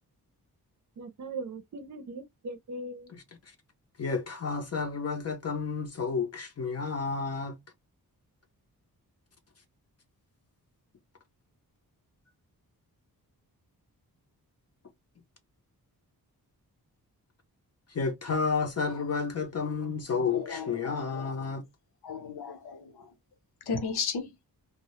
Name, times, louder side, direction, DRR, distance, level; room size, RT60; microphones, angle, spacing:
voice 1, 1.0-3.1, right 2 dB, 50° right, 0.6 m, -39 dB
voice 2, 4.0-7.6 17.9-21.6, left 5 dB, 40° left, 0.6 m, -31 dB
voice 3, 20.3-21.0 22.0-22.8 23.7-24.3, left 5 dB, 85° left, 0.8 m, -33 dB
2.1 x 2.1 x 2.8 m
wide cardioid pair, 145°, 38 cm